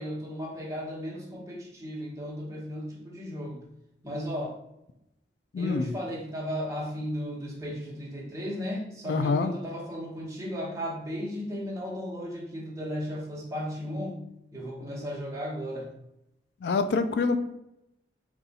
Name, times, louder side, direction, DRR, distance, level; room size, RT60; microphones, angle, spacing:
voice 1, 0.0-3.6 4.0-4.5 5.6-14.2 14.5-15.9, equal, 15° right, -3 dB, 0.9 m, -35 dB
voice 2, 5.5-5.9 9.1-9.5 16.6-17.4, left 4 dB, 70° left, 9 dB, 0.3 m, -26 dB
4.0 x 2.3 x 4.0 m, 0.85 s
head